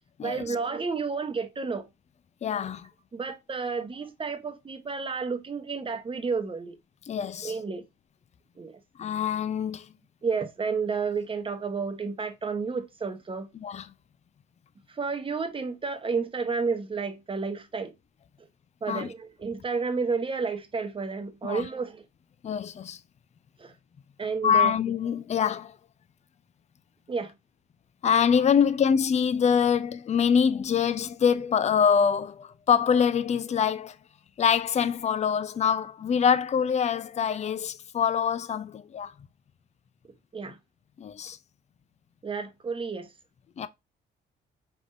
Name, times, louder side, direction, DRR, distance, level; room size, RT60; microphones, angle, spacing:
voice 1, 0.2-1.9 3.1-6.7 7.4-7.8 8.6-8.7 10.2-13.5 14.9-18.0 18.8-22.0 23.6-23.7 24.2-24.8 27.1-27.3 40.3-40.6 42.2-43.1, right 5 dB, 25° right, 0.9 m, -31 dB
voice 2, 2.4-2.9 7.1-7.5 9.0-9.9 13.6-13.9 18.9-19.1 21.4-21.7 22.4-23.0 24.4-25.7 28.0-34.0 34.4-39.1 41.0-41.4 43.6-43.7, left 7 dB, 35° left, 0.5 m, -24 dB
4.9 x 3.6 x 2.6 m
cardioid pair, 90°, 20 cm